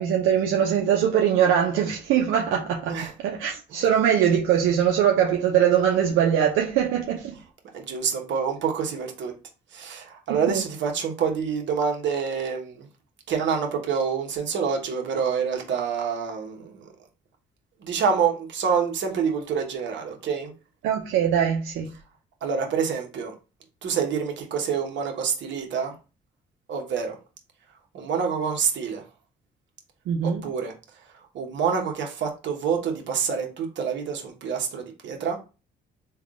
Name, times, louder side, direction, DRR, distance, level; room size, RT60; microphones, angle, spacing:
voice 1, 0.0-3.0 3.2-7.3 10.3-10.6 20.8-21.9 30.1-30.4, right 9 dB, 90° right, 0.6 m, -22 dB
voice 2, 7.7-9.3 9.7-12.9 13.3-16.9 17.8-20.5 22.4-23.3 23.8-25.9 26.7-27.2 27.9-29.0 30.2-30.7 31.3-35.4, right 6 dB, 65° right, 1.0 m, -27 dB
3.5 x 2.3 x 3.6 m
cardioid pair, 90°, 20 cm